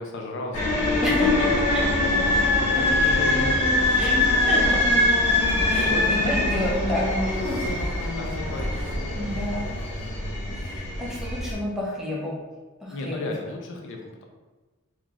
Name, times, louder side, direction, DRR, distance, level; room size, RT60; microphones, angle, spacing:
voice 1, 0.0-1.9 2.7-4.8 5.7-7.3 7.8-9.3 12.9-14.2, left 2 dB, 60° left, 1 dB, 0.5 m, -35 dB
sound 1, 0.5-11.5, left 2 dB, 85° left, 1.2 m, -23 dB
voice 2, 1.0-1.5 1.7-1.8 2.8-2.9 4.0-4.8 5.7-7.6 9.1-9.7 10.5-12.4 12.8-13.2, left 1 dB, ahead, -5 dB, 0.6 m, -30 dB
sound 2, 4.9-10.1, equal, 75° right, 0.9 m, -38 dB
3.0 x 2.4 x 3.8 m, 1.2 s
head